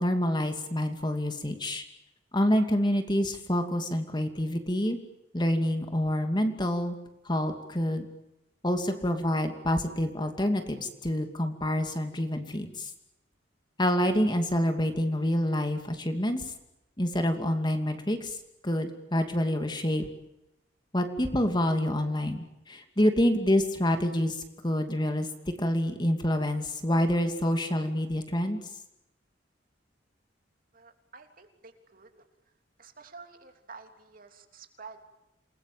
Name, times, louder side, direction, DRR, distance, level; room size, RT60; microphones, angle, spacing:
voice 1, 0.0-1.8 2.3-5.0 5.3-7.0 7.2-8.1 8.6-12.9 13.8-16.4 17.0-18.4 18.6-20.1 20.9-24.4 24.6-25.3 25.6-28.6, left 1 dB, 25° left, 6 dB, 2.7 m, -27 dB
voice 2, 30.7-32.2 32.8-35.0, right 4 dB, 50° right, 6 dB, 3.4 m, -50 dB
28.5 x 20.5 x 9.1 m, 0.88 s
head